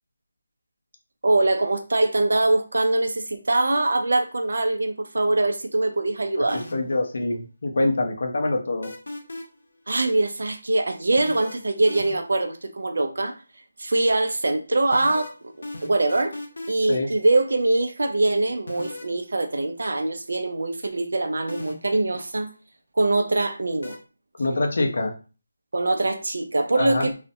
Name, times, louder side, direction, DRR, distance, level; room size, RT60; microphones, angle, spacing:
voice 1, 1.2-6.6 9.9-13.3 13.8-15.3 15.8-16.4 16.7-22.5 23.0-24.0 25.7-27.1, right 2 dB, 65° right, 0.4 m, -23 dB
sound 1, 6.5-7.0 8.8-9.6 11.2-12.4 14.9-16.9 18.7-19.2 21.5-22.0 23.8-24.0, left 2 dB, 90° left, 0.6 m, -36 dB
voice 2, 6.7-8.9 16.9-17.1 24.4-25.1 26.7-27.1, left 2 dB, 45° left, 0.5 m, -24 dB
2.4 x 2.1 x 2.6 m
figure-of-eight pair, 180°, 0 cm